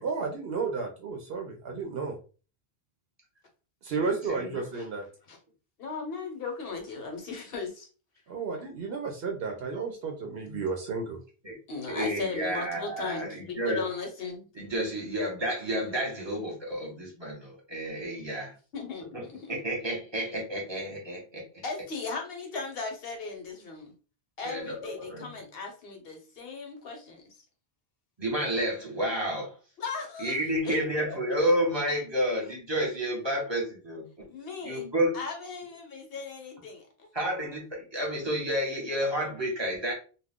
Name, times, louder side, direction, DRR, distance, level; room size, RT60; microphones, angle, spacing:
voice 1, 0.0-2.2 3.8-5.0 8.3-11.2, right 4 dB, 70° right, 2 dB, 0.8 m, -32 dB
voice 2, 4.0-4.6 11.4-11.5 11.9-13.8 14.5-18.5 19.1-19.2 19.5-21.6 24.4-25.3 28.2-29.5 30.2-34.1 34.6-35.2 37.1-39.9, equal, 25° right, -2 dB, 1.0 m, -30 dB
voice 3, 5.8-7.9 11.7-14.5 18.7-19.6 21.6-23.9 24.4-27.2 29.8-31.1 34.3-34.8 35.1-37.1, left 4 dB, 65° left, 3 dB, 1.0 m, -37 dB
2.3 x 2.3 x 3.5 m, 0.36 s
omnidirectional pair, 1.1 m